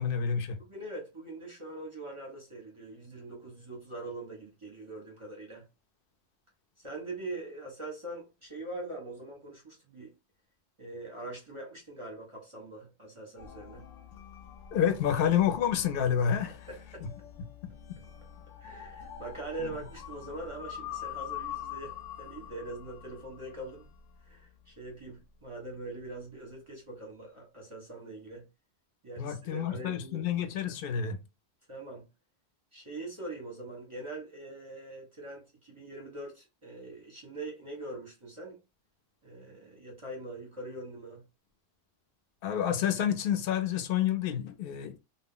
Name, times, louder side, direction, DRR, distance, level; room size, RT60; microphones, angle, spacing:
voice 1, 0.0-0.6 14.7-16.7 17.0-17.1 19.6-19.7 29.2-31.2 42.4-45.0, left 9 dB, 60° left, 0.6 m, -29 dB
voice 2, 0.6-5.7 6.8-10.1 10.8-13.9 16.7-17.0 18.6-23.9 24.2-28.5 29.0-30.3 31.7-32.1 32.7-38.6 39.2-41.2, right 2 dB, 35° right, 0.6 m, -43 dB
sound 1, 13.4-24.4, left 10 dB, 80° left, 0.9 m, -45 dB
2.3 x 2.0 x 3.6 m
omnidirectional pair, 1.3 m